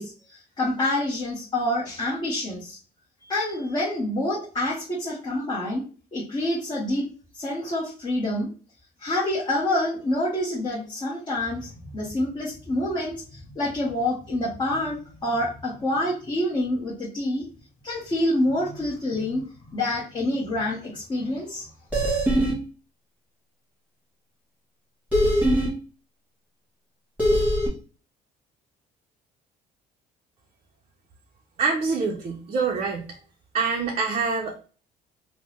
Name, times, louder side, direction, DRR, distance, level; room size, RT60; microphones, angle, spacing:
voice 1, 0.0-2.8 3.2-5.8 6.1-7.1 7.3-8.5 9.0-17.5 17.8-21.7 21.9-22.1, left 1 dB, 25° left, -6 dB, 0.9 m, -27 dB
sound 1, 21.9-22.5 25.1-25.7 27.2-27.7, equal, 10° right, 1.2 m, -21 dB
voice 2, 31.6-33.1 33.5-34.6, right 4 dB, 35° right, 1 dB, 0.5 m, -25 dB
3.3 x 2.0 x 2.9 m, 0.38 s
cardioid pair, 110°, 17 cm